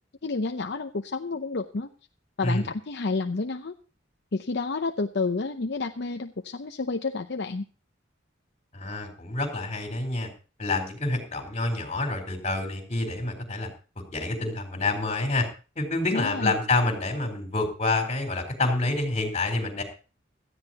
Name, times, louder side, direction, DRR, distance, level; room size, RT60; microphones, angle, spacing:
voice 1, 0.2-1.9 2.4-3.7 4.3-7.7 16.1-16.5, left 3 dB, 60° left, 6 dB, 0.7 m, -30 dB
voice 2, 8.7-10.3 10.6-13.7 14.1-15.4 15.8-19.8, left 2 dB, 35° left, 4 dB, 4.2 m, -27 dB
17.5 x 13.5 x 2.9 m, 0.35 s
head